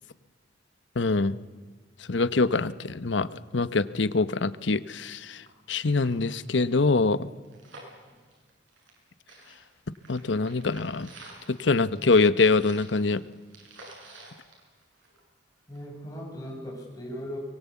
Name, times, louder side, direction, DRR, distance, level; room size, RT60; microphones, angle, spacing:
voice 1, 1.0-1.3 2.1-3.3 3.5-5.4 5.7-7.3 10.1-11.1 11.5-13.2, left 3 dB, 70° left, 15 dB, 0.9 m, -24 dB
sound 1, 5.1-5.2 5.5-5.6 5.9-9.0 9.3-15.4 15.7-15.8, right 2 dB, 85° right, 7.7 m, -50 dB
voice 2, 15.7-17.4, equal, 20° left, 0 dB, 6.8 m, -38 dB
23.5 x 21.0 x 8.3 m, 1.4 s
head